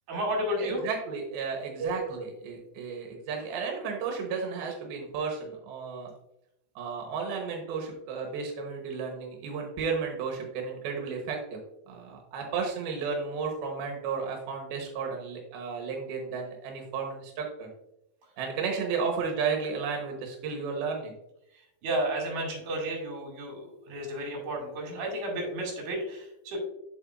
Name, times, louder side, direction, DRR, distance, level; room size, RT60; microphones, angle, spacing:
voice 1, 0.1-0.8 1.8-2.2 2.6-2.8 21.8-26.6, right 1 dB, 60° right, -1 dB, 3.7 m, -32 dB
voice 2, 0.6-6.1 6.8-11.6 11.9-17.7 18.4-21.1, right 5 dB, 90° right, 1 dB, 2.9 m, -33 dB
8.0 x 6.9 x 2.5 m, 0.83 s
omnidirectional pair, 4.3 m